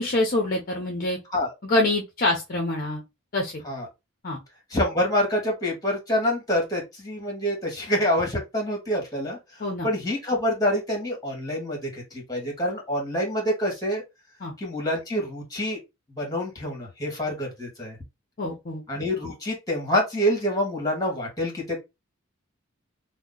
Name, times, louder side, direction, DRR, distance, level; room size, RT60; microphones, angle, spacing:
voice 1, 0.0-1.2 1.6-3.0 3.3-3.5 4.2-4.4 9.6-9.9 14.4-14.5 18.4-18.8, left 2 dB, 45° left, 0.6 m, -25 dB
voice 2, 4.7-9.4 9.8-14.0 14.6-15.8 16.1-18.0 18.9-21.8, equal, 20° left, 1.4 m, -26 dB
2.8 x 2.1 x 3.7 m
head